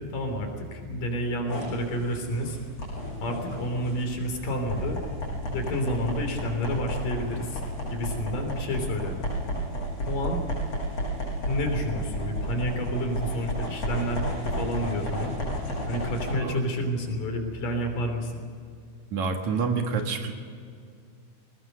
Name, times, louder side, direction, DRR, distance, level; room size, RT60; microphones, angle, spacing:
voice 1, 0.0-2.6 3.2-5.0 5.5-7.6 7.9-9.3 10.1-10.4 11.4-15.3 15.9-18.3, equal, 75° left, 4 dB, 4.9 m, -30 dB
sound 1, 1.5-16.3, equal, 45° left, 7.4 m, -32 dB
voice 2, 19.1-20.3, right 5 dB, 60° right, 4 dB, 3.0 m, -28 dB
21.5 x 19.5 x 6.8 m, 2.3 s
omnidirectional pair, 3.8 m